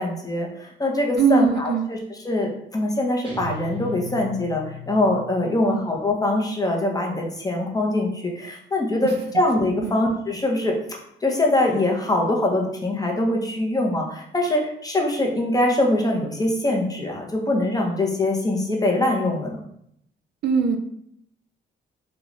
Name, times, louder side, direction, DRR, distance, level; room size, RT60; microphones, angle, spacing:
voice 1, 0.0-19.6, left 1 dB, 20° left, 0 dB, 0.8 m, -23 dB
voice 2, 1.2-1.9 5.6-5.8 9.8-10.0 20.4-20.8, right 5 dB, 60° right, 6 dB, 0.4 m, -20 dB
Guitar, 3.2-5.8, left 2 dB, 25° right, 1.2 m, -37 dB
3.8 x 2.3 x 3.1 m, 0.72 s
cardioid pair, 90°, 20 cm